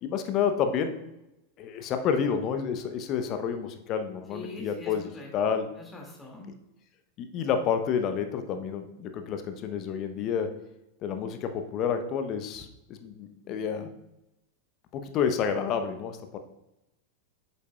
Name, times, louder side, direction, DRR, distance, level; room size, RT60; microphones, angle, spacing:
voice 1, 0.0-0.9 1.6-5.7 7.2-10.5 11.0-13.9 14.9-16.4, left 7 dB, 35° left, 7 dB, 0.9 m, -29 dB
voice 2, 4.3-5.3 5.7-6.5, left 2 dB, 15° left, 0 dB, 2.3 m, -43 dB
8.6 x 7.0 x 2.4 m, 0.90 s
figure-of-eight pair, 90°, 0 cm